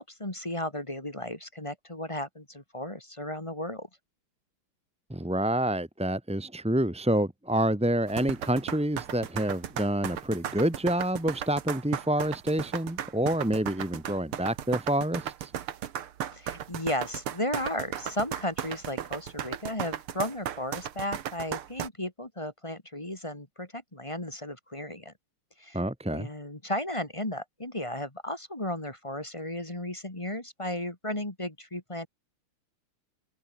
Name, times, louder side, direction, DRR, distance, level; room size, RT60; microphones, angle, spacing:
voice 1, 0.0-3.9 16.3-25.1 25.6-25.8 26.1-32.1, left 1 dB, 15° left, 2.2 m, -34 dB
voice 2, 5.1-15.5 25.7-26.3, right 1 dB, 5° right, 0.7 m, -28 dB
sound 1, 8.1-21.9, right 10 dB, 80° right, 2.2 m, -35 dB
omnidirectional pair, 2.4 m